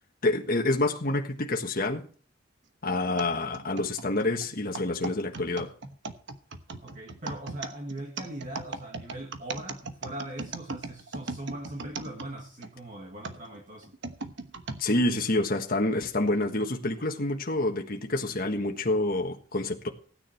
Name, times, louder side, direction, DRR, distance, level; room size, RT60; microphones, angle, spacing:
voice 1, 0.2-2.0 2.8-5.7 14.8-19.9, left 2 dB, 45° left, 1.5 m, -27 dB
sound 1, 3.2-12.7 13.2-14.8 15.5-15.6 16.4-16.7, right 3 dB, 60° right, 1.1 m, -38 dB
voice 2, 6.8-13.9, right 1 dB, 40° right, 1.7 m, -40 dB
16.0 x 9.7 x 4.5 m
head